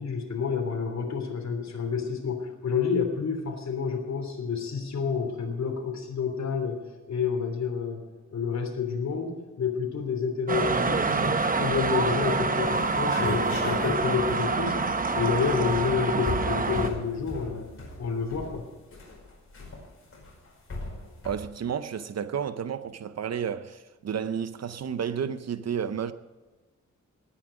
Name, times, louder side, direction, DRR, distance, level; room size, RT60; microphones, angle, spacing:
voice 1, 0.0-8.0 8.3-14.8 15.1-17.7 18.0-18.6, left 6 dB, 65° left, 3.3 m, -29 dB
sound 1, 10.5-16.9, right 4 dB, 30° right, 0.8 m, -26 dB
sound 2, 11.5-12.0 12.4-12.5 12.7-21.3, left 2 dB, 50° left, 5.3 m, -37 dB
voice 2, 21.2-26.1, right 7 dB, 60° right, 0.6 m, -31 dB
19.0 x 9.8 x 5.1 m
wide cardioid pair, 175°, 29 cm